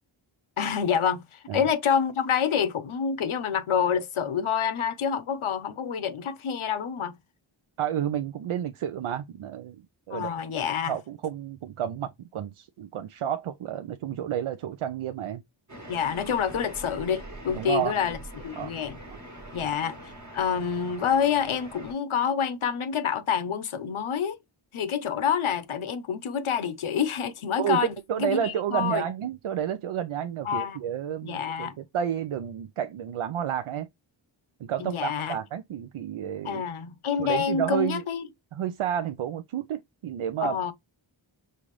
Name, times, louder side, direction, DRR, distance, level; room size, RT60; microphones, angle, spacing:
voice 1, 0.6-7.2 10.1-10.9 15.9-19.0 19.5-24.4 24.7-29.0 30.4-30.8 31.2-31.8 34.8-35.4 36.4-38.3 40.4-40.7, left 7 dB, 85° left, 0.8 m, -27 dB
voice 2, 7.8-9.8 10.1-10.3 10.9-15.4 17.5-18.0 18.6-18.7 19.6-19.7 27.6-33.9 34.6-36.6 37.2-38.0 38.5-40.6, right 9 dB, 85° right, 0.6 m, -30 dB
sound 1, 15.7-21.9, right 1 dB, 35° right, 1.2 m, -43 dB
5.5 x 2.4 x 3.1 m
wide cardioid pair, 120°, 48 cm